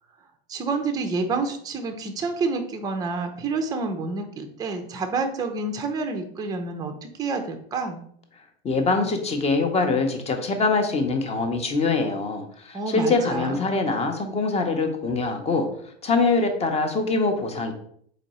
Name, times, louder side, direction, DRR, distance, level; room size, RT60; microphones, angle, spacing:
voice 1, 0.5-8.0 12.7-13.7, right 3 dB, 10° right, 5 dB, 0.4 m, -28 dB
voice 2, 8.6-15.7 16.0-17.7, left 3 dB, 20° left, 5 dB, 0.7 m, -23 dB
3.9 x 2.5 x 4.2 m, 0.64 s
hypercardioid pair, 115°, 32 cm